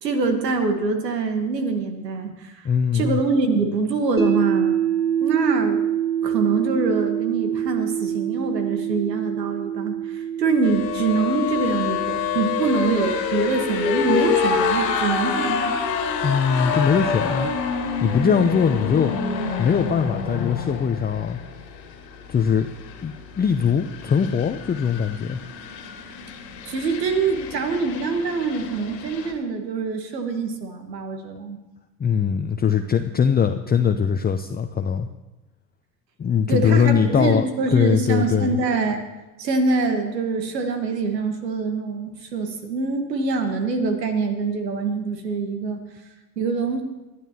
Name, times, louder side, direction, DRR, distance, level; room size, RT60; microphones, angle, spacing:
voice 1, 0.0-2.7 2.9-4.8 5.2-5.8 6.2-15.7 26.7-31.6 36.5-39.0 39.4-45.8 46.4-46.8, right 4 dB, 85° right, 6 dB, 1.6 m, -24 dB
voice 2, 2.6-3.2 16.2-17.5 18.0-19.1 19.6-21.4 22.3-22.7 23.0-25.4 32.0-35.1 36.2-37.4 37.7-38.6, left 7 dB, 20° left, 7 dB, 0.6 m, -21 dB
sound 1, 4.2-16.3, right 9 dB, 25° right, 3.2 m, -27 dB
sound 2, 10.6-29.3, left 5 dB, 85° left, 2.0 m, -27 dB
21.0 x 12.5 x 2.9 m, 1.1 s
hypercardioid pair, 70°, 49 cm